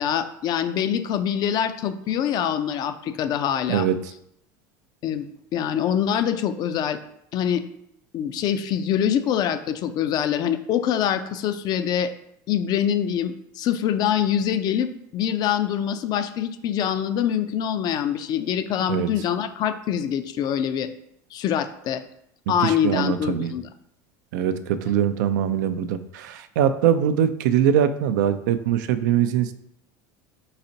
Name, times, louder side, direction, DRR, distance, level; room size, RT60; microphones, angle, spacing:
voice 1, 0.0-3.9 5.0-7.0 7.3-7.6 8.1-12.1 12.5-20.9 21.3-22.0 22.5-23.7, left 9 dB, 45° left, 10 dB, 0.4 m, -24 dB
voice 2, 3.7-4.1 18.9-19.1 22.5-23.5 24.3-29.5, right 9 dB, 80° right, 10 dB, 0.4 m, -22 dB
4.2 x 4.0 x 2.7 m, 0.74 s
supercardioid pair, 115°, 10 cm